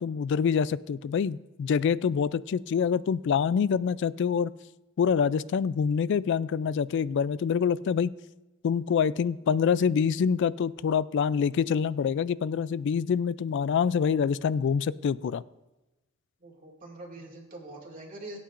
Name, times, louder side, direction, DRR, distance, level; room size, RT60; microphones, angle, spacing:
voice 1, 0.0-4.5 5.0-8.1 8.6-15.4, left 6 dB, 60° left, 18 dB, 0.3 m, -26 dB
voice 2, 16.4-18.4, right 2 dB, 40° right, -2 dB, 2.3 m, -44 dB
22.0 x 8.5 x 2.5 m, 1.0 s
head